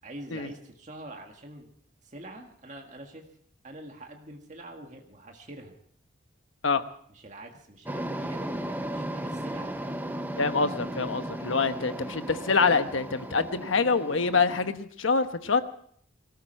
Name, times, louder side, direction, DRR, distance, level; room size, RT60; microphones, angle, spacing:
voice 1, 0.0-1.7 2.0-3.3 3.6-5.7 7.1-10.0, right 1 dB, 35° right, 2 dB, 1.9 m, -45 dB
sound 1, 7.9-14.7, right 1 dB, 10° right, 0.8 m, -36 dB
voice 2, 10.4-15.6, left 4 dB, 80° left, 9 dB, 1.1 m, -25 dB
23.0 x 13.5 x 4.5 m, 0.64 s
head